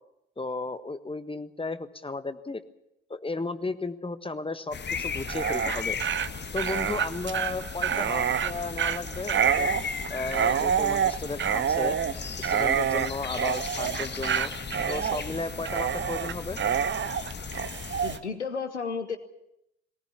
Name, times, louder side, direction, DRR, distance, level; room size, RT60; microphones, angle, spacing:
voice 1, 0.4-2.6 3.1-6.0 6.5-9.7 10.1-12.0 12.4-14.5 14.9-16.6, left 3 dB, 15° left, 11 dB, 1.4 m, -34 dB
sound 1, 4.7-18.2, left 6 dB, 30° left, 1.4 m, -37 dB
Dog, 5.2-18.2, right 8 dB, 35° right, 0.9 m, -27 dB
voice 2, 18.0-19.2, left 5 dB, 85° left, 11 dB, 1.1 m, -32 dB
20.0 x 19.0 x 7.2 m, 0.82 s
figure-of-eight pair, 45°, 34 cm